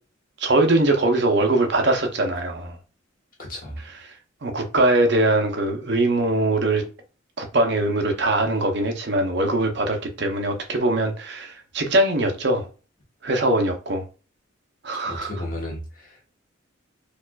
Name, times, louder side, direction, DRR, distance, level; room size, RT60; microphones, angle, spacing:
voice 1, 0.4-2.8 4.1-4.2 4.4-6.9 7.4-12.7 13.2-14.1 14.8-15.3, right 2 dB, 55° right, 0.6 m, -22 dB
voice 2, 3.4-3.8 15.0-16.3, left 1 dB, 40° left, 1.1 m, -34 dB
4.4 x 2.4 x 2.2 m
head